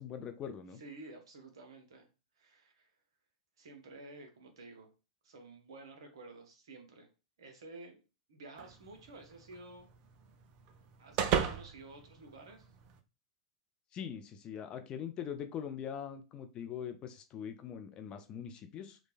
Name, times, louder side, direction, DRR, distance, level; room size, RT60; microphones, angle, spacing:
voice 1, 0.0-0.8 13.9-19.0, left 8 dB, 30° left, 7 dB, 0.4 m, -42 dB
voice 2, 0.7-2.1 2.4-2.9 3.6-4.9 5.2-7.1 7.4-8.0 8.3-9.9 11.0-12.7, right 2 dB, 60° right, 4 dB, 0.7 m, -52 dB
sound 1, 8.6-13.0, right 8 dB, 40° right, 0.4 m, -38 dB
3.1 x 2.1 x 2.5 m, 0.31 s
figure-of-eight pair, 95°, 3 cm